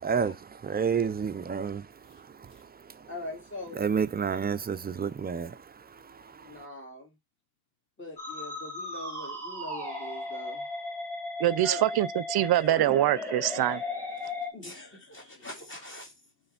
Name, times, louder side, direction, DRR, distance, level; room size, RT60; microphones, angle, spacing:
voice 1, 0.0-3.1 3.8-6.7, right 6 dB, 25° right, 0.4 m, -31 dB
voice 2, 3.1-3.8 6.4-7.1 8.0-10.6 11.6-11.9 14.2-16.1, left 1 dB, 35° left, 2.1 m, -42 dB
Musical instrument, 8.2-14.5, left 2 dB, 5° left, 1.7 m, -36 dB
voice 3, 11.4-13.8, right 13 dB, 85° right, 0.5 m, -24 dB
6.8 x 3.2 x 5.6 m
wide cardioid pair, 180°, 37 cm